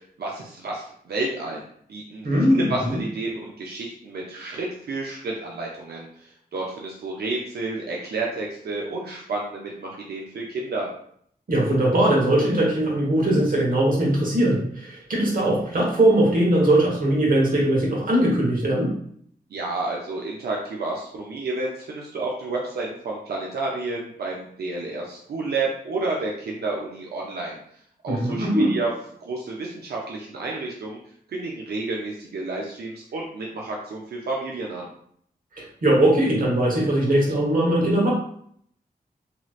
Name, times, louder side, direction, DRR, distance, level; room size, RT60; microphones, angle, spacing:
voice 1, 0.2-1.6 1.9-10.9 19.5-27.6 28.0-28.9 29.2-31.0 31.3-34.9, right 3 dB, 85° right, -2 dB, 0.5 m, -30 dB
voice 2, 2.2-3.0 11.5-18.9 28.1-28.7 35.5-38.1, right 1 dB, 60° right, -3 dB, 1.1 m, -20 dB
3.0 x 2.8 x 2.3 m, 0.65 s
wide cardioid pair, 135°, 16 cm